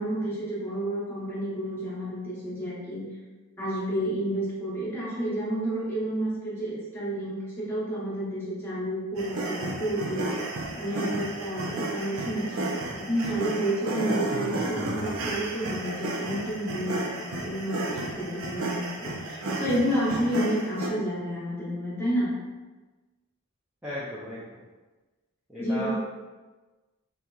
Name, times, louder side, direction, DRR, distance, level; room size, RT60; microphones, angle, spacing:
voice 1, 0.0-3.0 3.6-10.3 10.8-22.3 25.6-25.9, right 1 dB, 10° left, -8 dB, 1.0 m, -30 dB
sound 1, 9.2-20.9, right 2 dB, 70° right, 0.5 m, -32 dB
voice 2, 13.9-14.2 23.8-24.6 25.5-25.9, left 1 dB, 5° right, -12 dB, 0.6 m, -36 dB
3.8 x 2.8 x 2.3 m, 1.2 s
head